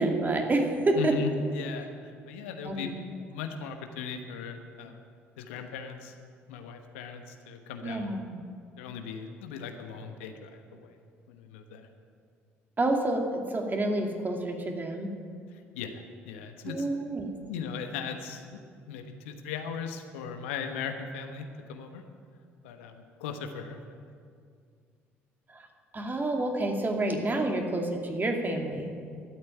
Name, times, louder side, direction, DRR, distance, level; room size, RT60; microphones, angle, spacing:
voice 1, 0.0-1.2 2.6-2.9 7.8-8.3 12.8-15.1 16.6-17.3 25.5-25.7 25.9-28.9, right 2 dB, 30° right, 2 dB, 2.6 m, -28 dB
voice 2, 1.0-2.9 3.3-5.0 5.4-6.2 6.5-8.1 8.8-11.0 11.3-11.9 15.7-16.8 17.5-18.5 18.9-22.0 22.6-22.9 23.2-24.1, left 6 dB, 80° left, 6 dB, 1.1 m, -38 dB
13.0 x 8.9 x 9.2 m, 2.2 s
hypercardioid pair, 55°, 7 cm